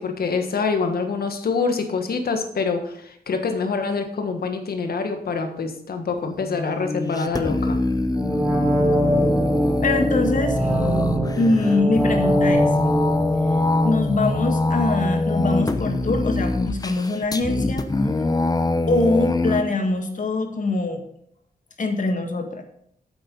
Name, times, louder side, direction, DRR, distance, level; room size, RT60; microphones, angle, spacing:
voice 1, 0.0-7.8, left 4 dB, 80° left, 6 dB, 1.6 m, -25 dB
sound 1, 6.3-19.6, left 2 dB, 25° left, 0.8 m, -24 dB
sound 2, 8.1-15.0 15.3-15.4, equal, 15° right, 4.5 m, -23 dB
voice 2, 9.8-11.0 11.4-12.7 13.8-17.8 18.9-21.0 21.8-22.6, left 2 dB, 55° left, 5 dB, 1.8 m, -23 dB
8.4 x 8.0 x 5.4 m, 0.69 s
wide cardioid pair, 95°, 16 cm